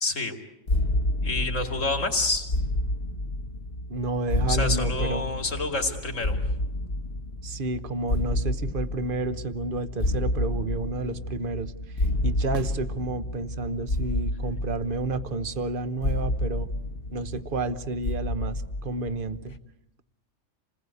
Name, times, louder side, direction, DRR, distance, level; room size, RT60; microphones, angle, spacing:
voice 1, 0.0-0.4 1.2-2.5 4.5-6.4, left 3 dB, 75° left, 4 dB, 2.8 m, -28 dB
sound 1, 0.7-19.6, left 1 dB, 55° left, 1.3 m, -30 dB
voice 2, 3.9-5.3 7.4-11.7 12.0-16.7 17.1-19.6, right 3 dB, 45° right, 12 dB, 1.1 m, -31 dB
sound 2, 12.5-13.7 17.5-17.6, right 5 dB, 80° right, 1.4 m, -44 dB
28.0 x 20.0 x 8.3 m, 0.93 s
omnidirectional pair, 1.3 m